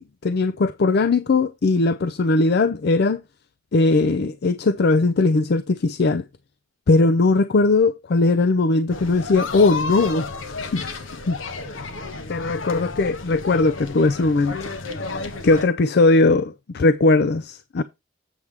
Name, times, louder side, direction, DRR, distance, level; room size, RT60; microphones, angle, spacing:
voice 1, 0.0-3.2 3.7-6.2 6.9-11.4 12.3-14.7 15.2-17.8, left 3 dB, 55° left, 0.5 m, -19 dB
sound 1, 8.9-15.7, left 3 dB, 85° left, 1.2 m, -32 dB
8.1 x 7.3 x 3.4 m
head